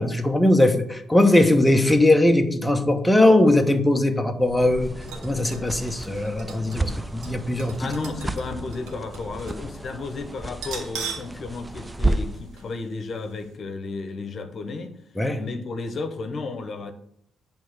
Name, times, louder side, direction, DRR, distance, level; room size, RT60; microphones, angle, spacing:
voice 1, 0.0-4.9 5.2-7.9 15.2-15.4, left 1 dB, 5° left, 4 dB, 1.0 m, -20 dB
sound 1, 4.4-12.5, right 2 dB, 15° right, 0.4 m, -32 dB
sound 2, 5.0-9.7 9.9-10.0 10.5-11.4 11.7-11.8 12.6-12.7 13.1-13.2, right 5 dB, 90° right, 1.7 m, -39 dB
voice 2, 7.8-14.9 15.4-16.9, left 3 dB, 50° left, 8 dB, 1.0 m, -33 dB
8.7 x 3.5 x 6.5 m, 0.71 s
cardioid pair, 90°, 0 cm